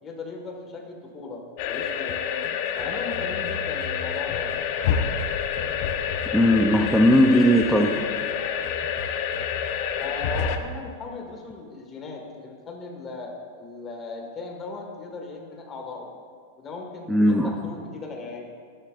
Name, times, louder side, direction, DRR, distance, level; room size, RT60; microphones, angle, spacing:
voice 1, 0.0-2.2 2.7-4.5 10.0-16.1 16.6-18.5, left 3 dB, 15° left, 1 dB, 1.6 m, -37 dB
sound 1, 1.6-10.6, left 7 dB, 40° left, 0.7 m, -28 dB
voice 2, 6.3-8.1 17.1-17.5, equal, ahead, 0 dB, 0.5 m, -18 dB
22.5 x 11.5 x 2.5 m, 2.1 s
supercardioid pair, 180°, 0 cm